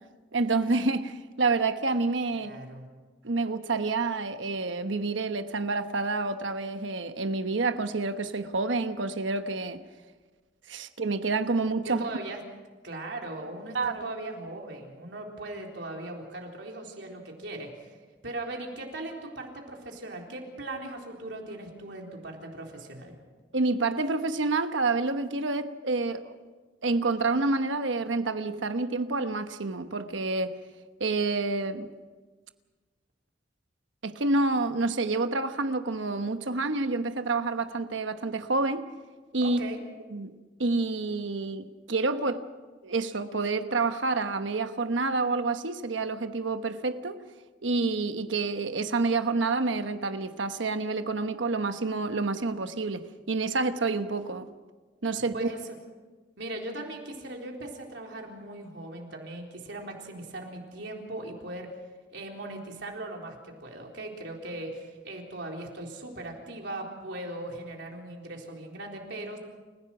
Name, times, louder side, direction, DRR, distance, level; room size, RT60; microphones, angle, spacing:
voice 1, 0.3-2.5 3.2-9.8 10.7-12.1 13.7-14.0 23.5-26.3 26.8-30.6 31.0-31.9 34.0-38.8 39.3-39.6 40.1-40.3 40.6-42.4 42.8-47.2 47.6-54.5 55.0-55.5, right 3 dB, 90° right, 1.1 m, -28 dB
voice 2, 2.3-2.9 11.8-12.4 12.8-18.0 18.2-23.1 39.4-39.8 55.3-55.6 56.4-61.7 62.1-69.4, right 2 dB, 75° right, 4.0 m, -39 dB
29.0 x 16.0 x 6.1 m
head